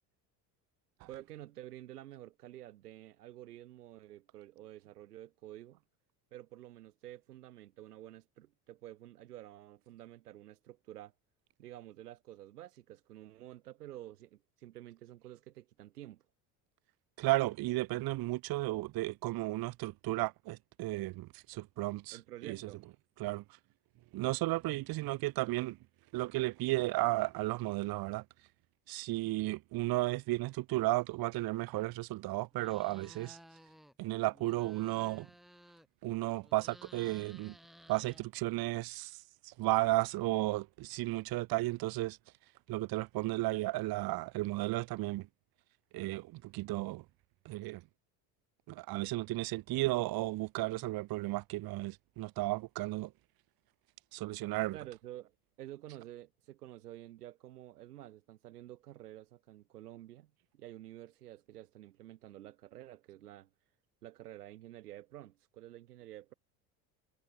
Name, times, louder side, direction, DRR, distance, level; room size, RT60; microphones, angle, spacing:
voice 1, 1.1-5.8 6.3-11.1 11.6-16.2 22.1-22.9 54.7-63.5 64.0-66.3, right 14 dB, 90° right, 2.5 m, -50 dB
voice 2, 17.2-22.7 23.2-23.4 24.1-25.8 26.1-28.2 28.9-33.4 34.0-35.3 36.0-37.5 37.9-42.2 42.7-45.3 45.9-47.0 47.4-47.8 48.7-53.1 54.1-54.8, right 19 dB, 50° right, 0.9 m, -34 dB
sound 1, 32.5-34.0 34.3-36.1 36.4-38.6, equal, ahead, 4.6 m, -57 dB
hypercardioid pair, 75°, 45 cm